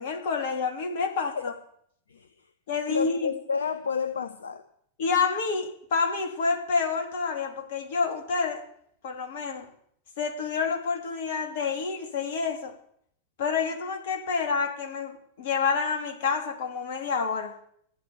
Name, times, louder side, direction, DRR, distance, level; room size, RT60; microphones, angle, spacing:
voice 1, 0.0-1.5 2.7-3.3 5.0-8.6 9.0-9.7 10.2-12.7 13.4-17.5, left 5 dB, 55° left, 4 dB, 3.0 m, -28 dB
voice 2, 2.1-2.4 2.9-4.6, left 5 dB, 70° left, 9 dB, 0.9 m, -30 dB
15.0 x 9.8 x 7.2 m, 0.66 s
figure-of-eight pair, 90°, 0 cm